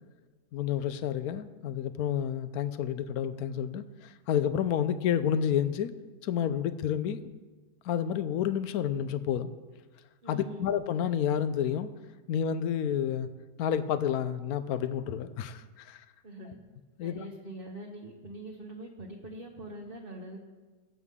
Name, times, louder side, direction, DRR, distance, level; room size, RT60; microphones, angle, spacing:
voice 1, 0.5-5.9 6.2-7.2 7.8-9.5 10.3-11.9 12.3-13.3 13.6-16.0 17.0-17.2, left 9 dB, 70° left, 11 dB, 1.1 m, -30 dB
voice 2, 10.2-10.7 16.2-16.6 17.0-20.4, right 1 dB, 35° right, -1 dB, 1.2 m, -43 dB
21.5 x 8.1 x 3.7 m, 1.3 s
omnidirectional pair, 1.8 m